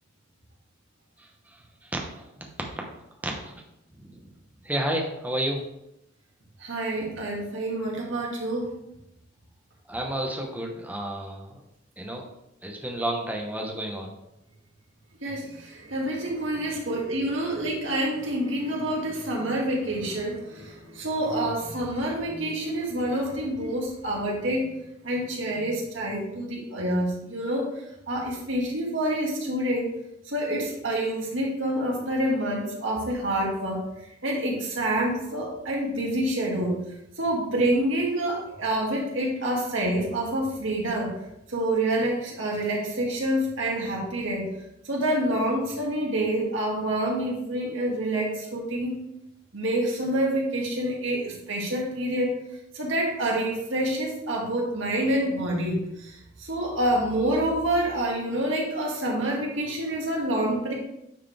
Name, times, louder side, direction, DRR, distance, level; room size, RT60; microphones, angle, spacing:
voice 1, 1.8-2.5 2.7-2.8 3.2-3.6 4.0-4.3 4.6-5.6 9.9-11.6 12.0-12.2 12.6-14.1, right 1 dB, 10° right, 0 dB, 1.1 m, -31 dB
voice 2, 6.6-8.7 15.2-24.7 25.0-27.8 28.1-29.9 30.3-33.9 34.2-36.8 37.2-41.1 41.5-44.5 44.8-49.0 49.5-52.3 52.7-60.7, right 1 dB, 80° right, -2 dB, 2.0 m, -27 dB
9.1 x 4.8 x 3.4 m, 0.83 s
head